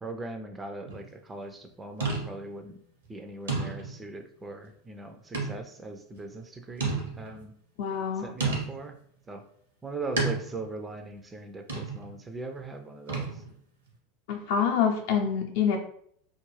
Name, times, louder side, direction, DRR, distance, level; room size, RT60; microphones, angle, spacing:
voice 1, 0.0-2.8 3.1-7.5 8.2-9.0 9.3-9.4 9.8-13.4, right 2 dB, 15° right, 5 dB, 0.4 m, -40 dB
sound 1, 0.9-1.1 2.0-2.6 3.0-3.1 3.5-4.1 5.3-5.7 6.2-6.3 6.8-7.4 8.4-8.9 10.2-10.7 11.7-12.1 13.1-13.6, right 4 dB, 75° right, 0.8 m, -31 dB
voice 2, 7.8-8.3 14.3-15.8, left 7 dB, 60° left, 2 dB, 0.6 m, -26 dB
2.4 x 2.2 x 3.2 m, 0.64 s
figure-of-eight pair, 85°, 0 cm